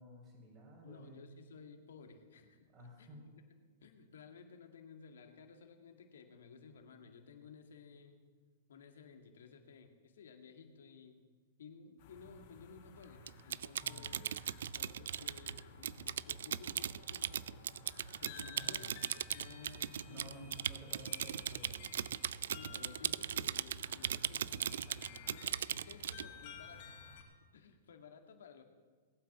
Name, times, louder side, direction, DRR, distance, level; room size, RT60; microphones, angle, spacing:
voice 1, 0.0-1.3 2.7-3.2 13.8-14.3 18.6-18.9 20.0-21.9 22.5-22.8, equal, 40° right, -4 dB, 5.0 m, -54 dB
voice 2, 0.8-2.7 3.0-3.5 3.8-8.2 8.7-11.2 11.6-14.3 14.7-17.7 18.2-20.5 20.9-21.3 22.5-26.9 27.5-28.6, left 5 dB, 75° left, 4 dB, 2.1 m, -56 dB
sound 1, 12.0-27.2, left 5 dB, 50° left, 3.9 m, -55 dB
Typing, 13.3-26.3, right 9 dB, 70° right, 0.4 m, -38 dB
19.5 x 9.2 x 7.4 m, 1.5 s
hypercardioid pair, 115°, 0 cm